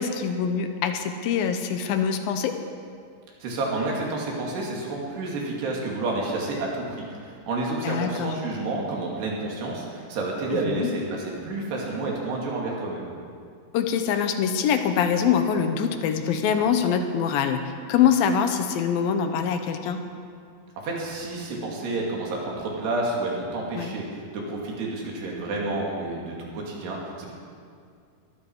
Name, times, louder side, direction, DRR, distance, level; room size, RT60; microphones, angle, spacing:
voice 1, 0.0-2.5 7.8-8.3 10.7-10.9 13.7-20.0 23.8-23.9, left 7 dB, 75° left, 7 dB, 2.5 m, -24 dB
voice 2, 3.4-13.1 20.8-27.3, right 2 dB, 80° right, -2 dB, 4.7 m, -30 dB
22.0 x 13.5 x 4.8 m, 2.3 s
omnidirectional pair, 4.7 m